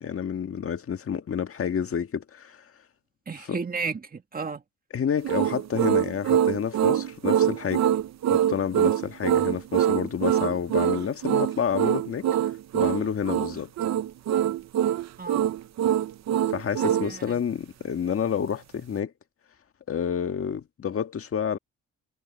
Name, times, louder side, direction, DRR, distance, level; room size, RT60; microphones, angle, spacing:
voice 1, 0.0-2.6 3.5-3.6 4.9-7.9 8.3-12.3 12.7-13.7 16.5-19.1 19.9-21.6, left 7 dB, 45° left, 1.7 m, -29 dB
voice 2, 3.3-4.6 15.2-15.5 16.8-17.4, right 4 dB, 30° right, 1.9 m, -33 dB
sound 1, 5.2-17.1, right 10 dB, 60° right, 0.8 m, -24 dB
cardioid pair, 90°, 30 cm